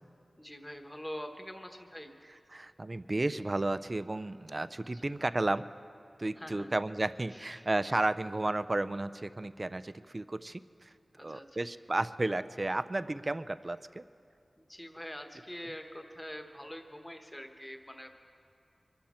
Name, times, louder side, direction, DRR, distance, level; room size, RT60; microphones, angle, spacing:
voice 1, 0.4-2.1 4.9-5.0 6.3-6.7 7.3-7.7 11.2-11.7 14.6-18.1, equal, 10° left, 5 dB, 1.2 m, -45 dB
voice 2, 2.5-5.7 6.2-10.9 11.2-14.0, right 2 dB, 35° right, 14 dB, 0.4 m, -33 dB
24.0 x 13.0 x 4.3 m, 2.5 s
wide cardioid pair, 90°, 0 cm